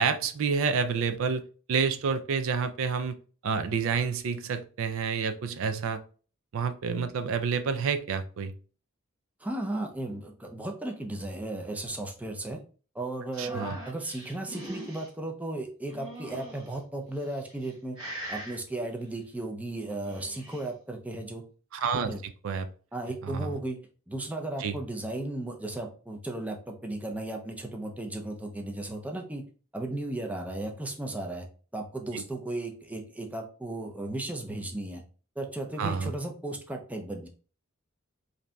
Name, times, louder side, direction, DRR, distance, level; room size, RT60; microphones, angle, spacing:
voice 1, 0.0-1.4 1.7-3.2 3.4-6.0 6.5-8.5 13.4-13.8 21.7-22.7 23.2-23.5 24.6-24.8 32.1-32.2 35.8-36.1, right 5 dB, 65° right, 10 dB, 0.4 m, -29 dB
voice 2, 9.4-12.6 12.9-18.0 18.3-21.4 22.1-22.2 22.9-23.8 24.1-29.4 29.7-31.5 31.7-35.0 35.4-37.3, right 2 dB, 5° right, 2 dB, 0.5 m, -35 dB
sound 1, 13.3-15.1 15.9-16.7 17.4-17.7 18.0-18.6 19.9-20.6, equal, 25° right, 1.9 m, -41 dB
5.1 x 2.6 x 2.2 m, 0.39 s
head